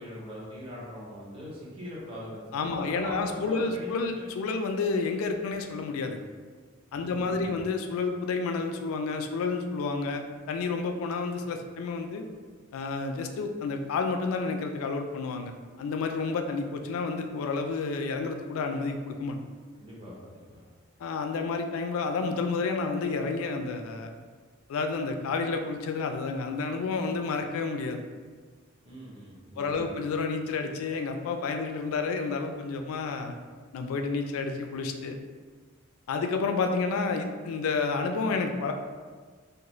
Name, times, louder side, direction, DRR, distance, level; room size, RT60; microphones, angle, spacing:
voice 1, 0.0-3.9 7.0-7.6 19.8-20.6 28.8-30.0, left 1 dB, 25° right, -7 dB, 0.8 m, -41 dB
voice 2, 2.5-6.2 6.9-12.2 12.7-15.5 15.8-19.4 21.0-24.1 24.7-28.0 29.6-33.3 33.7-35.2 36.1-38.7, left 4 dB, 80° left, 6 dB, 0.3 m, -30 dB
2.4 x 2.3 x 3.0 m, 1.5 s
head